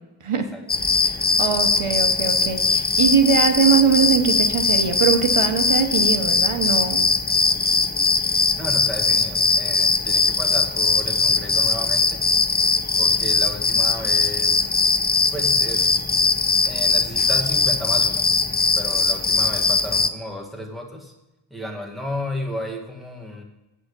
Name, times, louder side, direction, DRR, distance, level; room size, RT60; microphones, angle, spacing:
sound 1, 0.7-20.1, left 4 dB, 20° left, 0.4 m, -20 dB
voice 1, 0.8-7.1, right 6 dB, 80° right, 7 dB, 0.9 m, -22 dB
voice 2, 8.6-12.2 13.0-14.7 15.3-15.9 16.7-18.3 18.8-21.1 21.5-23.4, left 1 dB, ahead, -1 dB, 1.7 m, -33 dB
7.9 x 4.9 x 6.7 m, 1.0 s
wide cardioid pair, 60°, 49 cm